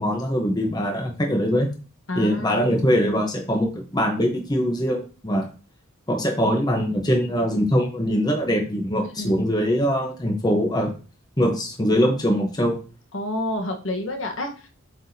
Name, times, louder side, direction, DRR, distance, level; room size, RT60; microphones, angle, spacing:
voice 1, 0.0-1.7 2.2-5.5 6.1-10.9 11.4-12.8, equal, 20° left, 3 dB, 1.0 m, -22 dB
voice 2, 2.1-2.9 9.2-9.4 13.1-14.7, left 1 dB, 60° left, 3 dB, 1.3 m, -29 dB
7.7 x 4.8 x 2.8 m, 0.35 s
head